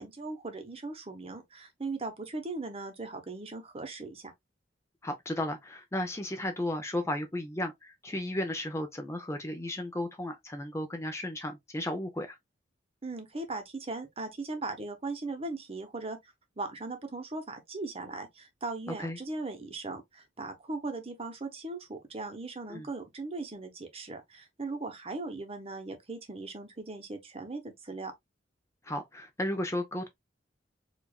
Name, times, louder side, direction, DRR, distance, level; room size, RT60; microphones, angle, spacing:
voice 1, 0.0-4.3 13.0-16.2 16.6-28.1, right 3 dB, 30° right, 0.9 m, -38 dB
voice 2, 5.0-12.4 18.9-19.2 22.7-22.9 28.8-30.1, left 1 dB, 15° left, 0.6 m, -34 dB
4.9 x 2.5 x 2.3 m
head